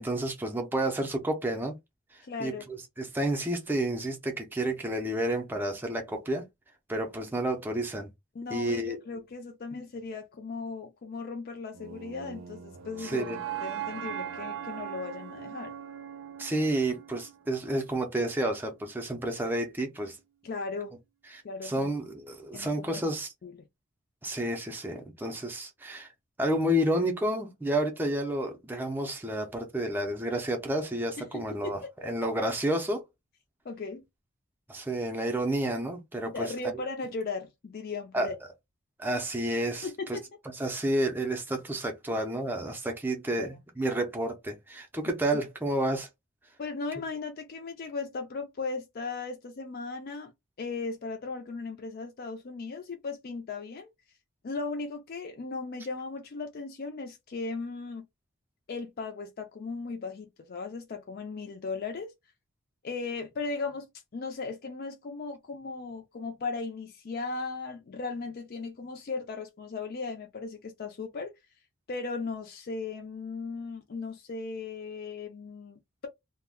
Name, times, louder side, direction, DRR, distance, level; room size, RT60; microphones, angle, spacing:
voice 1, 0.0-1.8 2.1-6.5 6.9-8.1 8.5-9.0 13.0-13.4 16.4-20.2 21.3-23.3 24.2-26.1 26.4-33.0 34.7-36.5 38.1-38.3 39.0-40.2 40.5-46.1, right 1 dB, 10° right, 0.5 m, -30 dB
voice 2, 2.2-2.7 8.3-13.3 13.6-15.7 20.4-21.0 21.4-21.9 22.5-23.0 23.4-23.5 31.2-31.9 33.6-34.0 36.3-38.4 39.8-40.2 43.4-43.6 45.3-45.4 46.6-50.3 50.6-53.9 54.4-58.1 58.7-62.1 62.8-63.9 64.1-71.3 71.9-76.1, left 4 dB, 50° left, 0.4 m, -37 dB
sound 1, 11.7-17.8, right 9 dB, 75° right, 0.5 m, -40 dB
2.3 x 2.1 x 3.5 m
head